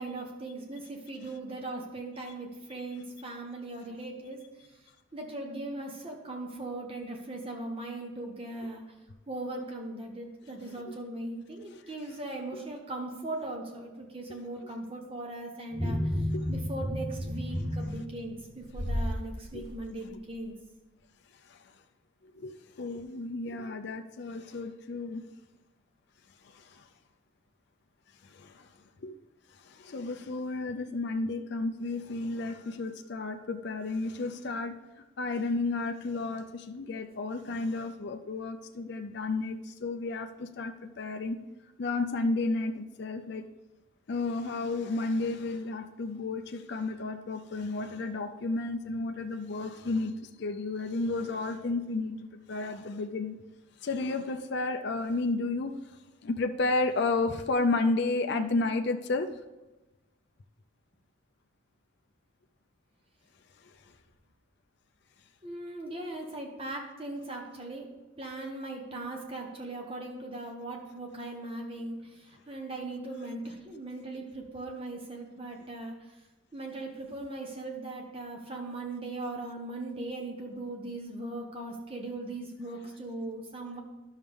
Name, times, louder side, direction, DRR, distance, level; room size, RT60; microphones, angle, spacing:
voice 1, 0.0-4.7 5.1-8.8 9.3-20.6 65.4-67.9 68.2-76.1 76.5-83.8, right 2 dB, 25° right, 1 dB, 1.2 m, -39 dB
sound 1, 15.7-19.2 19.6-19.8, equal, ahead, 3.0 m, -32 dB
voice 2, 22.2-25.2 26.4-26.9 28.2-28.7 29.0-29.2 29.6-41.4 41.8-43.5 44.1-53.4 53.8-55.7 56.2-59.3 63.6-63.7, left 3 dB, 55° left, 5 dB, 0.5 m, -32 dB
11.0 x 6.4 x 3.5 m, 1.1 s
head